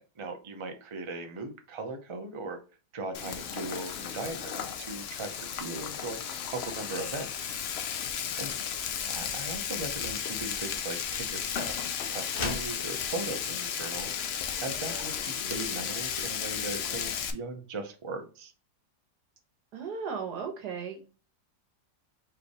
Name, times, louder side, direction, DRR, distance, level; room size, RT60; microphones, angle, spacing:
voice 1, 0.2-2.6 2.9-6.2 6.5-7.6 8.0-8.5 9.0-14.1 14.6-18.5, right 2 dB, 40° right, 5 dB, 0.4 m, -38 dB
Frying (food), 3.1-17.3, left 8 dB, 80° left, 0.5 m, -34 dB
sound 1, 12.3-12.8, left 3 dB, 45° left, 1.2 m, -34 dB
voice 2, 19.7-21.0, right 6 dB, 80° right, 5 dB, 1.6 m, -35 dB
4.8 x 3.3 x 3.1 m, 0.35 s
omnidirectional pair, 1.7 m